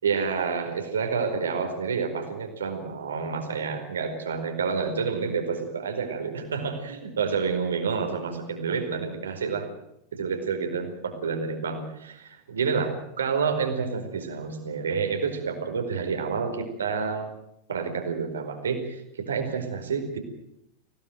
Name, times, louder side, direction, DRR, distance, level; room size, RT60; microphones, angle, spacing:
voice 1, 0.0-9.7 10.1-17.3 17.7-20.2, right 5 dB, 70° right, 5 dB, 4.7 m, -29 dB
24.5 x 18.0 x 9.2 m, 0.79 s
figure-of-eight pair, 90°, 0 cm